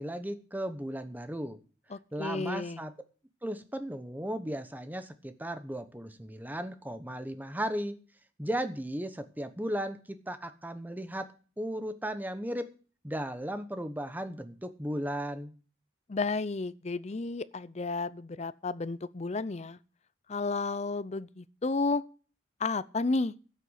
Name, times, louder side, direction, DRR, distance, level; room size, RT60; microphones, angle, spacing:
voice 1, 0.0-1.6 2.1-2.9 3.4-8.0 8.4-11.3 11.6-12.7 13.0-15.5, equal, 10° right, 0.9 m, -36 dB
voice 2, 1.9-2.8 16.1-19.8 20.3-22.0 22.6-23.3, left 3 dB, 35° left, 0.5 m, -32 dB
12.5 x 6.8 x 8.0 m
head